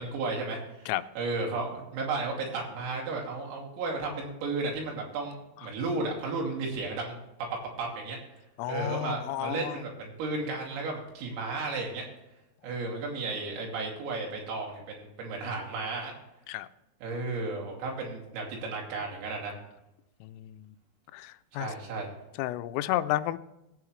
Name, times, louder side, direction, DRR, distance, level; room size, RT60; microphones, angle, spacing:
voice 1, 0.0-7.2 7.8-8.2 8.7-12.1 12.6-16.1 17.0-19.6 21.5-22.1, right 3 dB, 90° right, -1 dB, 5.3 m, -34 dB
voice 2, 8.6-9.8 16.5-16.7 20.2-20.7 21.1-21.7 22.4-23.4, left 14 dB, 90° left, 12 dB, 3.3 m, -32 dB
20.0 x 8.6 x 3.2 m, 0.94 s
omnidirectional pair, 5.8 m